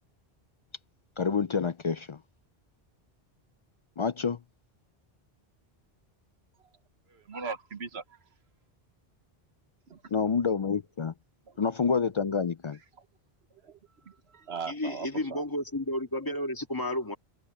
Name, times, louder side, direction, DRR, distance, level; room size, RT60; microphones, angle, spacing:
voice 1, 1.2-2.2 4.0-4.4 10.1-11.1 11.6-12.8, left 5 dB, 55° left, 0.3 m, -28 dB
voice 2, 7.1-8.0 9.9-10.0 13.6-13.8 14.1-15.4, right 5 dB, 80° right, 1.5 m, -39 dB
voice 3, 14.7-17.2, left 1 dB, 20° left, 2.0 m, -32 dB
omnidirectional pair, 1.1 m